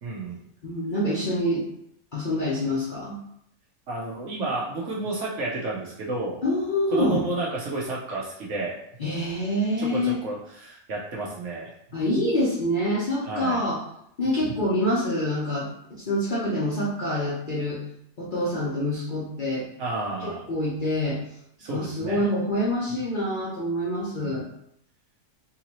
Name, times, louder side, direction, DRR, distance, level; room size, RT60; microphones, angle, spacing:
voice 1, 0.0-0.5 3.9-6.4 6.9-8.7 9.8-11.7 13.2-13.6 19.8-20.4 21.6-22.3 24.2-24.4, right 2 dB, 60° right, -4 dB, 1.0 m, -31 dB
voice 2, 0.6-1.7 2.1-3.2 6.4-7.2 9.0-10.2 11.9-13.8 14.2-17.8 18.2-19.7 20.2-21.2 21.7-24.5, left 1 dB, 45° left, -7 dB, 0.7 m, -26 dB
3.8 x 2.7 x 2.9 m, 0.73 s
omnidirectional pair, 1.6 m